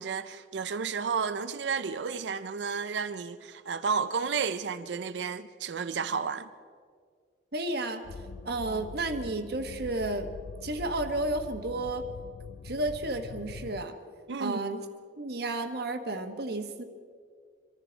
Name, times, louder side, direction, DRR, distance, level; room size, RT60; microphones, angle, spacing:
voice 1, 0.0-6.5 14.3-14.6, right 5 dB, 80° right, 0.5 m, -32 dB
voice 2, 7.5-8.0 8.4-10.3 10.6-12.0 12.6-13.9 14.4-14.8 15.2-16.8, right 2 dB, 65° right, 1.3 m, -32 dB
sound 1, 8.0-13.9, left 4 dB, 80° left, 0.4 m, -43 dB
24.5 x 14.0 x 4.0 m
head